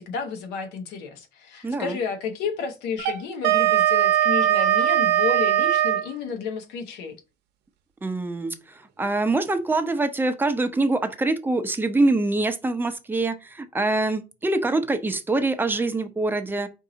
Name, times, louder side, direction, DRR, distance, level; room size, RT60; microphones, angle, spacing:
voice 1, 0.0-7.1, left 5 dB, 90° left, 1.1 m, -31 dB
voice 2, 1.6-2.0 8.0-16.7, right 2 dB, 10° right, 0.6 m, -24 dB
Wind instrument woodwind instrument, 3.0-6.1, right 12 dB, 75° right, 0.7 m, -20 dB
4.6 x 2.7 x 3.9 m
cardioid pair, 110°, 17 cm